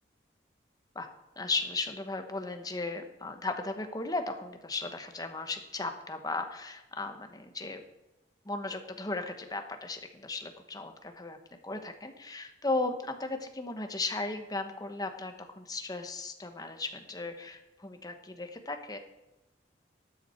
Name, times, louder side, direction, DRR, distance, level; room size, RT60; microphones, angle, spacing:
voice 1, 1.4-7.8 8.4-11.4 11.6-19.0, left 3 dB, 20° left, 6 dB, 1.1 m, -36 dB
13.0 x 9.3 x 4.5 m, 0.98 s
head